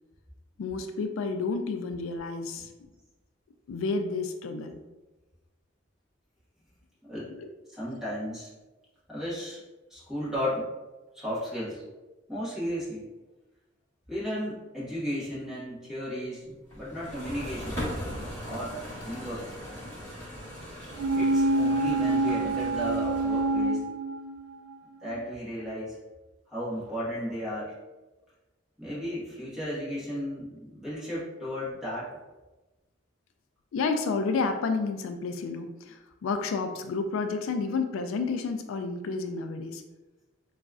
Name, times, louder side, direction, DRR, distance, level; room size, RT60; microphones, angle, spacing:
voice 1, 0.6-2.7 3.7-4.8 7.3-7.5 33.7-39.8, left 4 dB, 90° left, 7 dB, 0.3 m, -30 dB
voice 2, 7.7-8.5 9.1-9.6 9.9-10.7 11.1-11.8 12.3-13.1 14.1-17.8 18.4-18.7 19.0-19.5 21.1-23.8 25.0-26.0 26.5-27.7 28.8-32.1, equal, 5° right, -10 dB, 1.2 m, -34 dB
sound 1, 16.7-23.7, equal, 15° left, 1.4 m, -39 dB
sound 2, 21.0-24.7 25.1-25.2, right 2 dB, 80° right, 0.3 m, -26 dB
4.0 x 2.4 x 2.4 m, 1.1 s
head